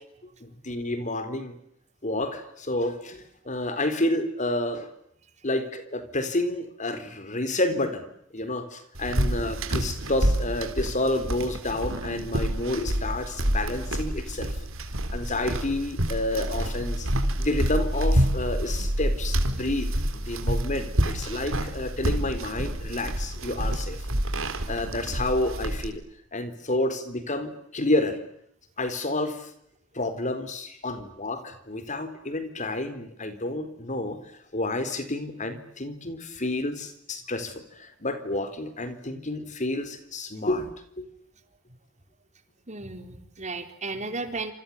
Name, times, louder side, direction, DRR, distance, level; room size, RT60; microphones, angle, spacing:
voice 1, 0.4-1.5 2.0-4.9 5.4-8.1 8.3-14.5 15.1-17.1 17.4-24.0 24.7-26.0 26.3-28.2 28.8-29.5 29.9-34.2 34.5-40.7 41.0-41.1, left 2 dB, 40° left, 11 dB, 3.9 m, -29 dB
sound 1, 8.9-25.9, right 1 dB, 85° right, 4.2 m, -28 dB
voice 2, 42.7-44.5, right 3 dB, 35° right, 8 dB, 3.9 m, -34 dB
28.5 x 28.0 x 7.2 m, 0.72 s
head